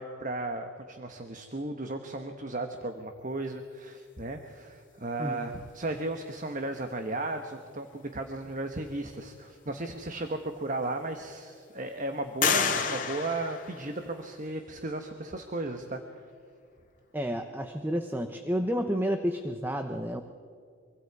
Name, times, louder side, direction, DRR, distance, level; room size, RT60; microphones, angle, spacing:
voice 1, 0.0-16.2, right 2 dB, 40° right, 6 dB, 1.2 m, -35 dB
sound 1, 10.1-10.2 10.8-11.5 12.4-14.4, left 6 dB, 40° left, 2.1 m, -30 dB
voice 2, 17.1-20.2, equal, 10° right, 6 dB, 0.8 m, -30 dB
25.0 x 24.0 x 4.8 m, 2.3 s
head